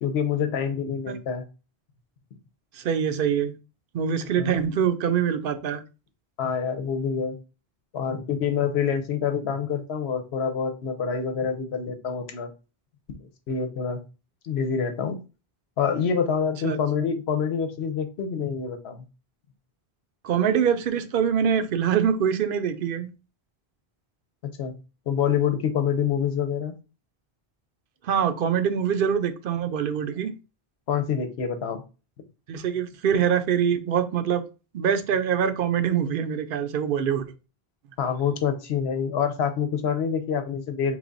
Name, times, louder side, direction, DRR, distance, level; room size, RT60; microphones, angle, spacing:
voice 1, 0.0-1.5 4.4-4.5 6.4-7.4 7.9-12.5 13.1-14.0 14.4-15.2 15.8-19.0 24.6-24.8 25.1-26.7 30.9-31.8 38.0-41.0, left 7 dB, 90° left, 1.0 m, -26 dB
voice 2, 2.7-3.5 3.9-5.8 16.6-16.8 20.2-23.1 28.0-30.3 32.5-34.4 34.7-37.3, right 8 dB, 65° right, 0.7 m, -24 dB
3.6 x 3.1 x 3.9 m
omnidirectional pair, 1.0 m